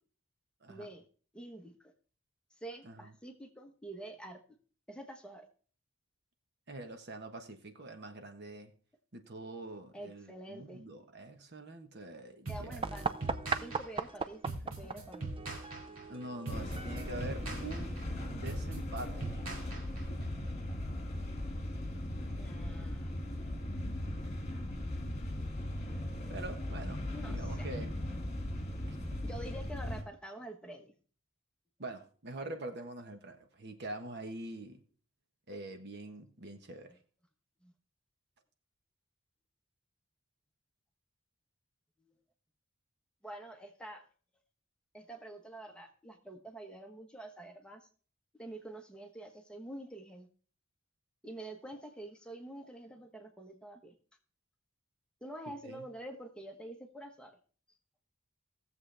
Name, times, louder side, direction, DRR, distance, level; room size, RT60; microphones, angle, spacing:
voice 1, 0.7-1.1 1.3-1.7 2.6-4.4 4.9-5.5 9.9-10.8 12.5-13.0 13.6-15.3 22.3-23.1 27.0-27.7 29.2-30.9 37.6-37.7 42.0-42.1 43.2-44.1 44.9-47.9 48.3-50.3 51.2-53.9 55.2-57.4, right 1 dB, 5° left, 1.1 m, -47 dB
voice 2, 6.7-8.7 9.1-12.8 16.1-18.0 18.3-19.4 20.1-20.5 25.9-26.0 26.3-27.0 27.3-28.0 28.9-29.5 31.8-34.8 35.5-36.9 55.6-55.9, right 2 dB, 55° right, 1.2 m, -45 dB
sound 1, 12.5-20.3, right 2 dB, 75° right, 2.6 m, -42 dB
sound 2, 12.8-18.4, right 4 dB, 25° right, 0.4 m, -39 dB
sound 3, 16.5-30.0, left 1 dB, 35° left, 2.1 m, -38 dB
18.0 x 7.3 x 3.4 m
head